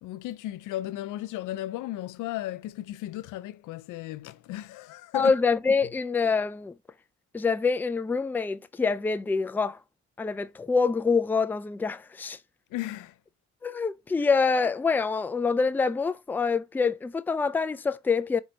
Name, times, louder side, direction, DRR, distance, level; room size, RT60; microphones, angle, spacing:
voice 1, 0.0-5.3 12.7-13.1, left 15 dB, 85° left, 0.5 m, -35 dB
voice 2, 5.1-6.7 7.3-9.8 10.2-12.4 13.6-18.4, left 4 dB, 5° left, 0.3 m, -26 dB
4.5 x 2.8 x 3.9 m
cardioid pair, 90°, 30 cm